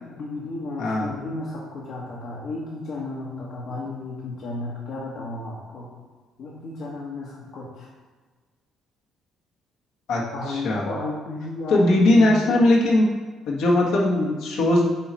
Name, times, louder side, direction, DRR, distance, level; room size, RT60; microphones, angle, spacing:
voice 1, 0.0-5.9 6.4-7.9 10.3-12.6, left 2 dB, 60° left, -4 dB, 1.3 m, -33 dB
voice 2, 10.1-10.8 11.7-13.1 13.5-14.8, left 1 dB, 80° left, -3 dB, 1.7 m, -19 dB
8.7 x 3.1 x 5.5 m, 1.4 s
cardioid pair, 100°, 0 cm